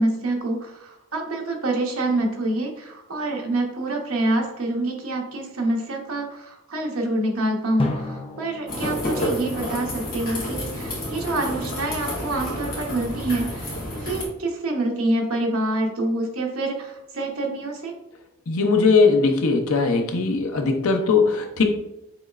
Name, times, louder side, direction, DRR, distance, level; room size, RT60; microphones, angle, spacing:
voice 1, 0.0-17.9, right 2 dB, 80° right, 0 dB, 1.0 m, -26 dB
Drum, 7.8-10.5, left 1 dB, 25° left, 0.6 m, -33 dB
sound 1, 8.7-14.3, left 1 dB, 40° left, 1.5 m, -30 dB
voice 2, 18.5-21.6, left 4 dB, 85° left, 4 dB, 0.7 m, -19 dB
6.9 x 3.1 x 2.5 m, 0.88 s
head